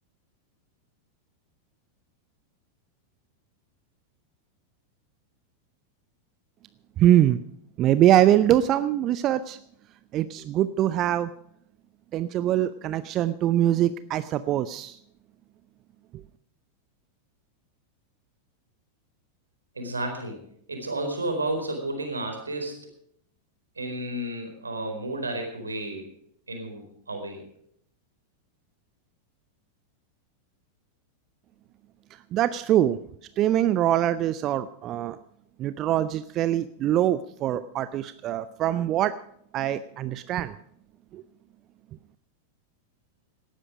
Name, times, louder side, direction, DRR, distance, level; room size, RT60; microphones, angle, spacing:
voice 1, 7.0-7.4 7.8-9.6 10.1-11.3 12.1-15.0 32.3-33.0 33.4-35.2 35.6-39.2 39.5-40.5 41.1-41.2, right 12 dB, 35° right, 14 dB, 0.6 m, -23 dB
voice 2, 19.7-20.4 20.7-22.8 23.8-26.1 26.5-27.4, right 1 dB, 75° right, 4 dB, 4.4 m, -32 dB
18.0 x 13.0 x 4.9 m, 0.68 s
figure-of-eight pair, 90°, 0 cm